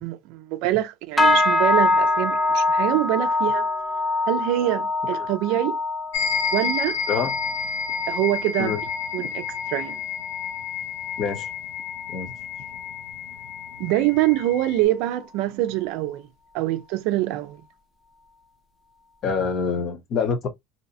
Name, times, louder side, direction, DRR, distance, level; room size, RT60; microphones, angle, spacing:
voice 1, 0.0-3.7 4.3-5.8 6.5-7.0 8.1-8.8 9.1-10.0 13.8-16.3 16.5-17.6, right 15 dB, 65° right, 0.4 m, -25 dB
sound 1, 1.2-10.7 11.0-11.5 11.9-12.2 12.8-12.9, left 2 dB, 5° left, 0.4 m, -25 dB
sound 2, 6.1-14.8, left 6 dB, 80° left, 0.6 m, -30 dB
voice 2, 19.2-20.5, left 5 dB, 40° left, 0.7 m, -25 dB
2.7 x 2.1 x 2.6 m
supercardioid pair, 140°, 0 cm